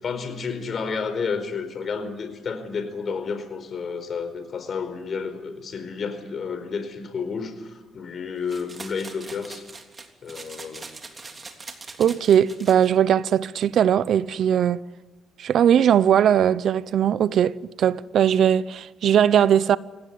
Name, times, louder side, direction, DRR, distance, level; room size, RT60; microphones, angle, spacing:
voice 1, 0.0-9.7 10.2-10.9, left 5 dB, 50° left, 4.7 m, -31 dB
sound 1, 8.5-12.9, right 3 dB, 30° right, 3.2 m, -42 dB
voice 2, 12.0-14.8 15.4-19.8, right 9 dB, 70° right, 0.7 m, -19 dB
26.0 x 18.0 x 9.6 m
cardioid pair, 90°, 0 cm